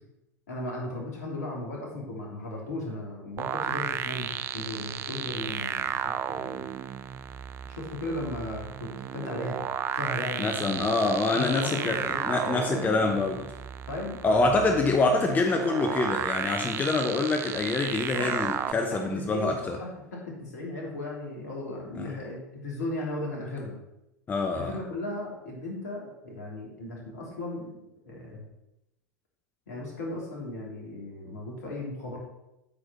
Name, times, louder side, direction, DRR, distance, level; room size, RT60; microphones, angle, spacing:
voice 1, 0.5-6.6 7.7-9.6 10.0-12.9 13.9-14.8 18.1-19.0 19.3-23.8 24.5-27.8 28.1-28.5 29.7-32.2, left 1 dB, 65° left, -2 dB, 3.2 m, -36 dB
sound 1, 3.4-18.7, right 9 dB, 25° right, 0.4 m, -33 dB
voice 2, 10.4-13.5 14.2-19.8 22.0-22.1 24.3-24.7, left 3 dB, 20° left, 4 dB, 0.9 m, -26 dB
8.5 x 4.8 x 6.3 m, 0.90 s
figure-of-eight pair, 90°, 9 cm